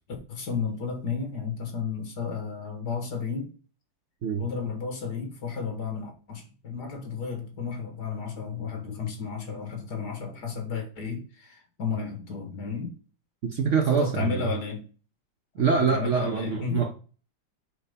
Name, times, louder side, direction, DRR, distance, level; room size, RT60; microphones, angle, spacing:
voice 1, 0.3-3.5 4.4-12.9 13.8-14.8 15.8-16.9, left 5 dB, 55° left, 2.2 m, -33 dB
voice 2, 13.4-14.5 15.6-16.9, right 6 dB, 75° right, 0.6 m, -25 dB
5.1 x 4.4 x 5.2 m
omnidirectional pair, 2.2 m